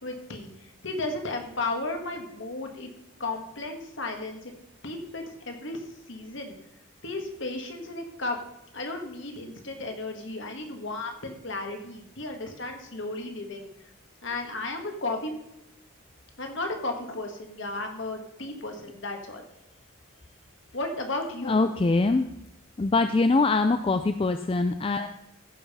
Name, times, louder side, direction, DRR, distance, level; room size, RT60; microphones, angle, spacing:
voice 1, 0.0-2.9 3.2-4.5 4.8-6.5 7.0-8.4 8.7-13.7 14.2-15.4 16.4-19.4 20.7-21.6, left 2 dB, 55° left, 4 dB, 1.8 m, -34 dB
voice 2, 21.4-22.3 22.8-25.1, left 3 dB, 25° left, 8 dB, 0.3 m, -23 dB
14.5 x 5.6 x 5.5 m, 0.84 s
head